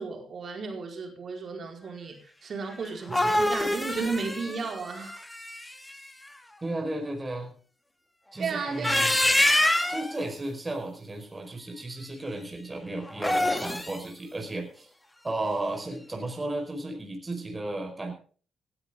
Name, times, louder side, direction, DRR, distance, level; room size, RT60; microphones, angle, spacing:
voice 1, 0.0-5.2 8.4-9.1, right 4 dB, 50° right, 3 dB, 4.6 m, -34 dB
sound 1, 2.8-5.9 8.6-10.1 13.1-14.0, left 1 dB, 15° left, 2.7 m, -25 dB
voice 2, 6.6-7.5 8.3-9.2 9.9-14.9 15.2-18.1, right 2 dB, 25° right, 4 dB, 4.9 m, -34 dB
19.0 x 13.0 x 3.8 m, 0.41 s
hypercardioid pair, 45°, 0 cm